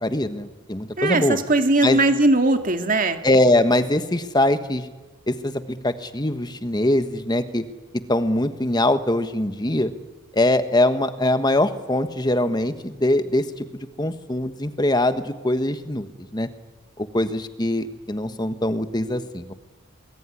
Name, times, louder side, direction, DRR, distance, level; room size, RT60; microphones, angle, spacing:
voice 1, 0.0-1.4 1.8-2.0 3.2-4.9 5.3-5.5 5.8-7.6 8.1-9.9 10.3-16.1 16.3-16.5 17.0-19.5, left 1 dB, 20° left, 10 dB, 1.3 m, -22 dB
voice 2, 1.0-3.2, right 2 dB, 40° right, 6 dB, 2.3 m, -19 dB
26.5 x 21.0 x 9.9 m, 1.3 s
head